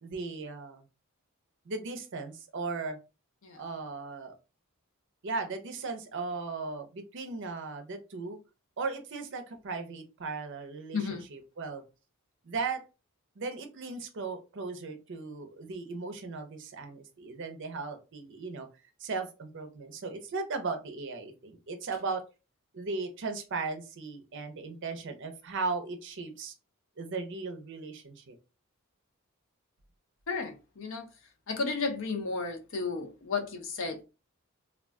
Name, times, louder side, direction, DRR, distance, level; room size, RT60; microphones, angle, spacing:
voice 1, 0.0-0.9 1.7-3.0 3.6-4.3 5.2-8.4 8.8-11.0 11.3-11.8 12.4-12.8 13.4-18.7 19.0-22.2 22.7-26.5 27.0-28.4, right 4 dB, 60° right, 0.6 m, -37 dB
voice 2, 10.9-11.3 30.3-31.1 31.5-34.0, left 4 dB, 65° left, 0.6 m, -33 dB
2.3 x 2.2 x 3.4 m
head